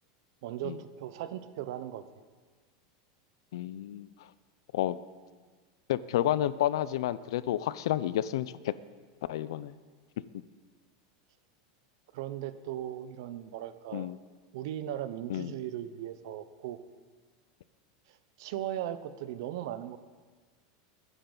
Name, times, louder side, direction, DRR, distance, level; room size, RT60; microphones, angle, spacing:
voice 1, 0.4-2.0 12.1-14.1 14.5-16.8 18.1-20.0, right 12 dB, 60° right, 12 dB, 0.7 m, -38 dB
voice 2, 3.5-4.1 4.7-5.0 5.9-8.7 9.3-9.7 13.9-14.2 15.3-15.5, left 12 dB, 80° left, 17 dB, 0.5 m, -30 dB
20.5 x 10.0 x 3.9 m, 1.5 s
supercardioid pair, 165°, 2 cm